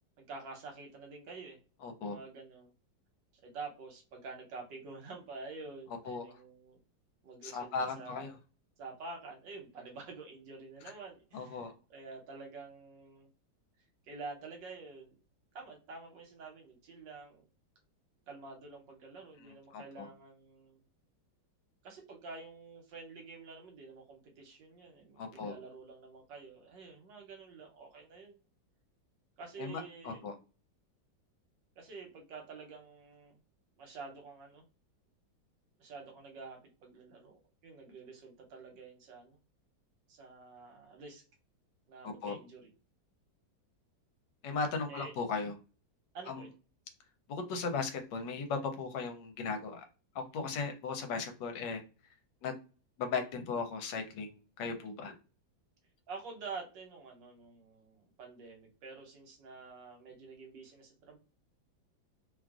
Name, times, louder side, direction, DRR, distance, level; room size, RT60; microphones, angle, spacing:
voice 1, 0.2-1.6 2.0-2.7 3.4-6.8 7.2-8.3 8.8-13.3 14.1-15.2 15.5-17.4 18.3-20.8 21.8-28.4 29.4-30.3 31.8-33.4 33.8-34.6 35.8-39.4 40.1-41.2 41.9-42.7 44.9-45.1 46.1-46.5 56.1-61.2, right 4 dB, 75° right, 1 dB, 1.4 m, -48 dB
voice 2, 1.8-2.2 6.1-6.2 7.4-8.3 11.3-11.7 19.7-20.1 25.2-25.5 29.6-30.3 42.0-42.4 44.4-45.5 46.3-46.4 47.3-49.8 50.1-51.8 52.4-52.6 53.0-55.1, left 4 dB, 75° left, 5 dB, 1.2 m, -37 dB
3.0 x 2.4 x 2.3 m, 0.34 s
omnidirectional pair, 2.1 m